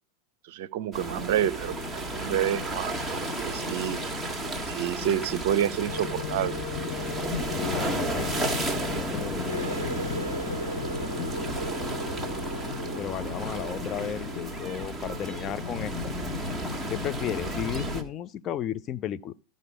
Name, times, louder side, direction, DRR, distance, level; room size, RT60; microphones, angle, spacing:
voice 1, 0.5-1.8 2.1-2.9 3.4-4.0 4.7-6.5, right 10 dB, 50° right, 0.6 m, -28 dB
sound 1, 0.9-18.0, equal, 5° right, 1.6 m, -32 dB
Wind instrument woodwind instrument, 5.9-10.5, left 12 dB, 50° left, 3.8 m, -39 dB
voice 2, 7.5-8.3 8.9-9.7 13.0-15.9 16.9-19.3, left 10 dB, 30° left, 0.6 m, -34 dB
Water tap faucet, 9.5-15.0 15.3-15.8 16.3-16.6 17.3-17.4, equal, 85° right, 0.4 m, -38 dB
14.0 x 5.3 x 4.9 m
figure-of-eight pair, 90°, 0 cm